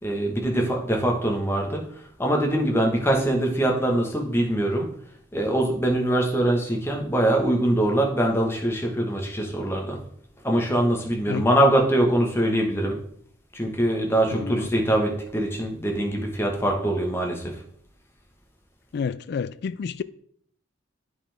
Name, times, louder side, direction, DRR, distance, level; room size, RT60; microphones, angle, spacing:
voice 1, 0.0-1.9 2.2-4.9 5.3-10.0 10.4-13.0 13.5-17.6, right 1 dB, 10° left, 1.2 m, -23 dB
voice 2, 14.3-14.7 18.9-20.0, left 6 dB, 55° left, 0.3 m, -30 dB
8.5 x 5.6 x 3.4 m
head